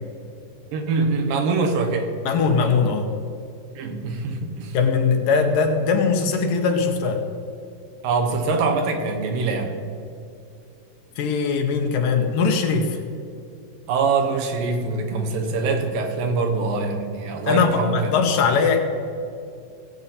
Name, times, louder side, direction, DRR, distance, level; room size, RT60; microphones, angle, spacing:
voice 1, 0.7-2.1 3.8-4.8 8.0-9.8 13.9-18.2, right 4 dB, 80° right, 4 dB, 2.8 m, -24 dB
voice 2, 2.2-3.1 4.7-7.2 11.2-13.0 17.4-18.8, left 5 dB, 75° left, 4 dB, 2.6 m, -20 dB
18.0 x 8.3 x 4.2 m, 2.5 s
omnidirectional pair, 4.1 m